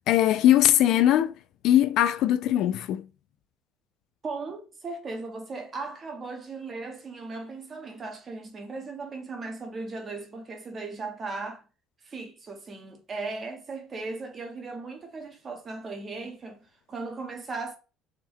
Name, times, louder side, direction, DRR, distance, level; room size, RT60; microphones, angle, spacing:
voice 1, 0.1-1.3 1.6-3.1, left 12 dB, 60° left, 0.3 m, -20 dB
voice 2, 4.2-11.7 12.0-16.6 16.9-17.8, right 3 dB, 25° right, 0.8 m, -37 dB
3.6 x 2.2 x 4.4 m
cardioid pair, 155°, 0 cm